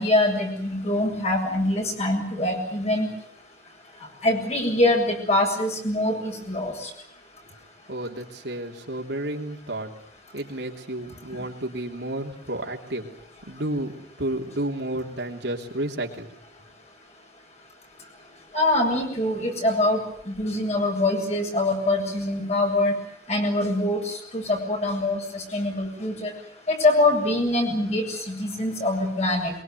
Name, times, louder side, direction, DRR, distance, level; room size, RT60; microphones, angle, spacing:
voice 1, 0.0-3.1 4.2-6.9 18.5-20.0 20.3-22.9 23.3-26.3 26.7-29.5, left 1 dB, 40° left, 2 dB, 7.4 m, -24 dB
voice 2, 7.9-9.9 10.3-13.1 13.5-16.3, right 1 dB, 70° right, 2 dB, 3.5 m, -31 dB
23.0 x 23.0 x 9.4 m, 0.67 s
head